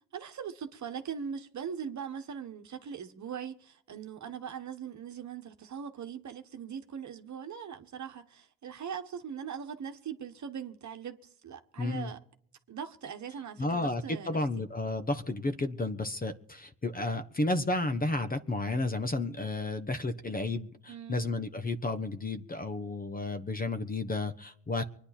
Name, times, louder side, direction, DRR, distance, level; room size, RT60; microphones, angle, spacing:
voice 1, 0.1-12.2 12.7-14.4 20.9-21.2, right 7 dB, 40° right, 1.5 m, -40 dB
voice 2, 11.8-12.1 13.6-24.8, left 2 dB, 20° left, 1.2 m, -32 dB
24.5 x 10.0 x 4.3 m
hypercardioid pair, 75°, 45 cm